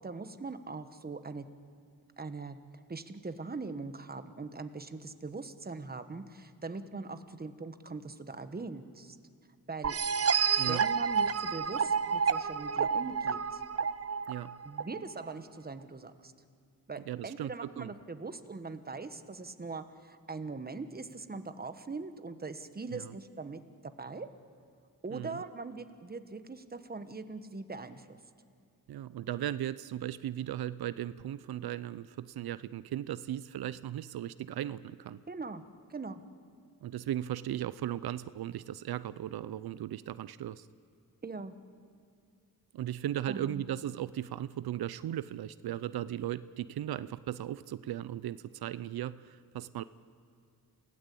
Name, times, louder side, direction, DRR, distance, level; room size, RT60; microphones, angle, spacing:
voice 1, 0.0-1.5 2.2-9.2 9.7-10.0 10.6-13.6 14.6-16.3 16.9-24.3 25.0-28.2 35.3-35.6 35.9-36.2 41.2-41.5 43.3-43.6, right 3 dB, 25° right, 10 dB, 1.2 m, -41 dB
sound 1, 9.8-15.3, right 6 dB, 40° right, 0.6 m, -30 dB
voice 2, 17.1-17.9 22.9-23.1 25.1-25.4 28.9-35.2 36.8-40.7 42.7-49.8, right 12 dB, 90° right, 16 dB, 0.5 m, -37 dB
28.5 x 17.0 x 8.3 m, 2.2 s
wide cardioid pair, 95°, 36 cm